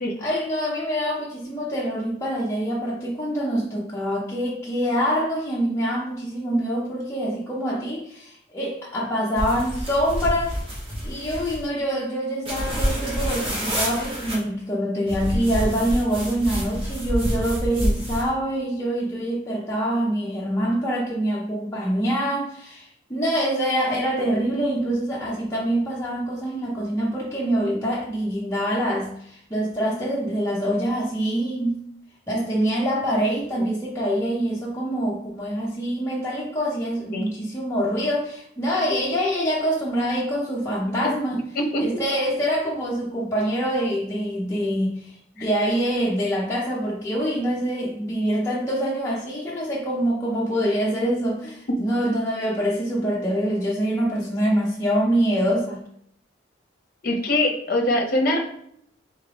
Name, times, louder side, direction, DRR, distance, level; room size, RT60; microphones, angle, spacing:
voice 1, 0.2-10.5 11.0-31.8 32.3-41.5 41.8-55.8, equal, 15° left, 0.6 m, -25 dB
sound 1, 9.4-11.7 12.4-14.4 15.1-18.3, equal, 30° right, 1.0 m, -27 dB
voice 2, 57.0-58.4, left 1 dB, 50° left, 0.7 m, -22 dB
3.8 x 3.6 x 3.3 m
head